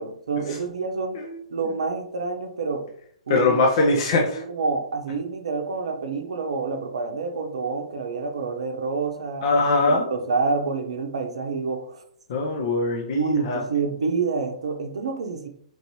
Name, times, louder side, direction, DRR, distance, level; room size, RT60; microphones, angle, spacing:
voice 1, 0.0-1.2 1.5-2.8 3.3-3.6 3.9-9.5 9.9-12.0 13.1-15.5, right 4 dB, 60° right, 5 dB, 0.6 m, -28 dB
voice 2, 3.3-4.4 9.4-10.1 12.3-13.6, left 3 dB, 45° left, 1 dB, 0.5 m, -21 dB
4.5 x 2.6 x 2.9 m, 0.64 s
figure-of-eight pair, 115°, 4 cm